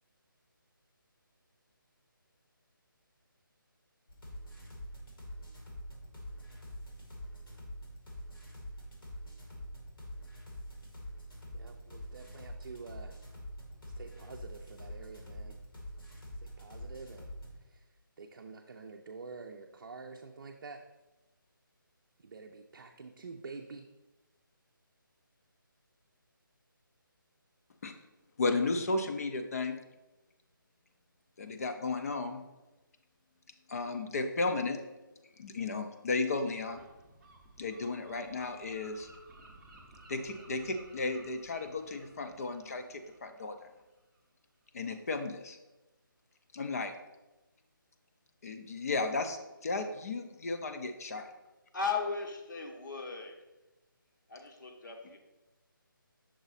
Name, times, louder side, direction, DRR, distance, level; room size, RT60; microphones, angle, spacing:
sound 1, 4.1-17.6, equal, 90° left, 2.2 m, -45 dB
voice 1, 11.5-13.2 14.0-15.6 16.4-17.3 17.6-17.9 18.2-20.8 22.2-23.9, right 4 dB, 60° right, 2 dB, 0.5 m, -48 dB
voice 2, 28.4-29.8 31.4-32.4 33.7-34.8 35.4-36.8 37.6-39.1 40.1-43.7 44.7-45.6 46.5-46.9 48.4-51.3, left 3 dB, 45° left, 7 dB, 0.6 m, -34 dB
Gull seagull, 36.7-44.2, right 2 dB, 5° right, 0.7 m, -57 dB
voice 3, 51.7-53.4 54.3-55.2, left 5 dB, 60° left, 3 dB, 1.0 m, -36 dB
6.2 x 3.9 x 4.0 m, 1.0 s
figure-of-eight pair, 160°, 12 cm